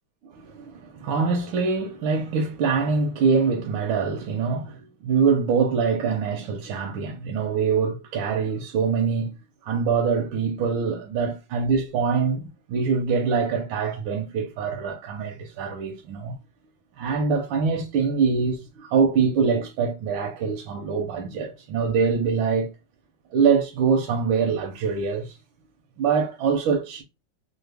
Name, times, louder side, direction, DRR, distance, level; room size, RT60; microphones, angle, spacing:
voice 1, 0.2-9.3 9.6-16.4 17.0-22.7 23.3-25.4 26.0-27.0, right 5 dB, 85° right, 1.4 m, -24 dB
4.9 x 2.1 x 3.3 m
omnidirectional pair, 2.1 m